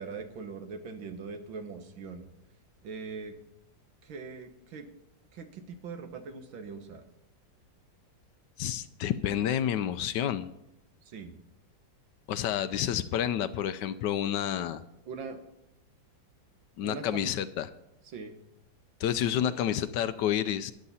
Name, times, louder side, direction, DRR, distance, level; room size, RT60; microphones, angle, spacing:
voice 1, 0.0-2.2 2.8-3.3 4.0-4.9 5.3-7.0 11.1-11.3 15.1-15.4 16.8-17.3 18.0-18.3, right 5 dB, 80° right, 7 dB, 2.0 m, -41 dB
voice 2, 8.6-10.5 12.3-14.8 16.8-17.7 19.0-20.7, left 10 dB, 75° left, 13 dB, 1.2 m, -29 dB
13.5 x 10.5 x 4.2 m, 0.87 s
omnidirectional pair, 2.1 m